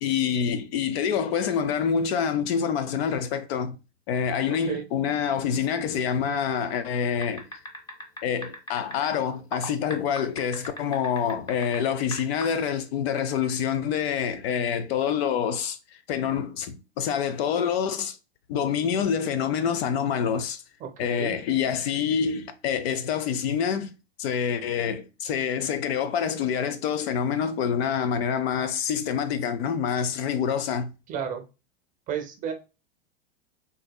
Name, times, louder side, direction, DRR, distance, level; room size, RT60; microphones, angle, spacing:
voice 1, 0.0-3.8 4.1-7.5 8.2-15.8 16.1-18.2 18.5-20.6 21.0-23.9 24.2-30.9, left 7 dB, 60° left, 0.6 m, -26 dB
voice 2, 4.4-4.8 20.8-21.3 31.1-31.4 32.1-32.5, right 7 dB, 25° right, 0.6 m, -32 dB
sound 1, 7.2-9.1 9.5-11.8 12.1-12.4, equal, 10° left, 0.7 m, -36 dB
3.9 x 2.7 x 2.2 m
supercardioid pair, 140°, 34 cm